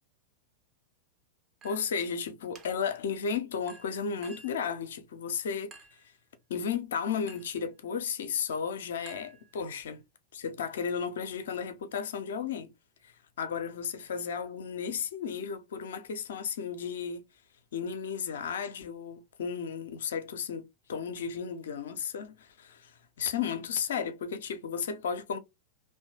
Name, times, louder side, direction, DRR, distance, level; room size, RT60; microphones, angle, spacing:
voice 1, 1.6-5.7 6.5-10.0 10.3-12.7 13.0-17.2 17.7-25.4, left 6 dB, 60° left, 0.5 m, -34 dB
Chink clink, 1.6-2.1 2.6-3.0 3.7-4.7 5.7-6.1 7.3-7.6 9.1-9.9, right 4 dB, 25° right, 0.6 m, -53 dB
2.9 x 2.1 x 2.8 m
figure-of-eight pair, 90°, 0 cm